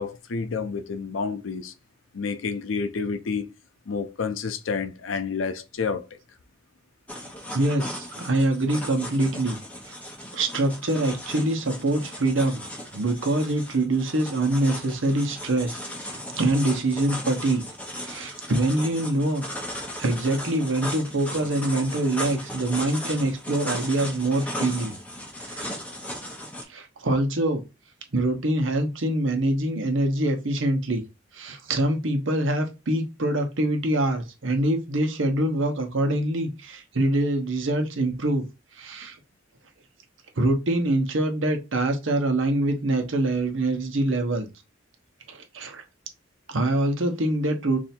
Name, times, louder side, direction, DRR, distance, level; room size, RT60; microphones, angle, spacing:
voice 1, 0.0-1.7 2.1-3.5 3.9-6.1, left 5 dB, 80° left, 0.6 m, -29 dB
sound 1, 7.1-26.6, left 1 dB, 5° left, 0.8 m, -36 dB
voice 2, 7.5-9.6 9.9-10.0 10.3-12.6 12.9-17.6 18.0-24.9 25.4-25.7 26.7-27.6 28.1-31.0 31.3-38.5 38.8-39.2 40.4-44.5 45.3-45.8 46.5-47.8, right 1 dB, 75° right, 0.9 m, -25 dB
3.2 x 2.7 x 4.3 m
head